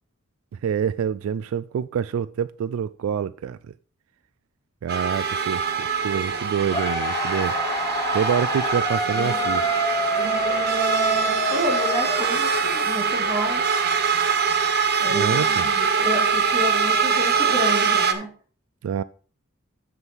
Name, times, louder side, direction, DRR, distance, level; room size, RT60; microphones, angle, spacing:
voice 1, 0.6-3.6 4.8-7.6 8.1-9.7 15.1-15.7 18.8-19.0, right 8 dB, 75° right, 0.3 m, -26 dB
sound 1, 4.9-18.1, right 6 dB, 50° right, 0.9 m, -23 dB
sound 2, 6.7-12.8, equal, 15° left, 1.5 m, -27 dB
voice 2, 11.5-13.6 15.0-18.3, equal, 20° right, 2.6 m, -30 dB
7.3 x 6.6 x 4.5 m
head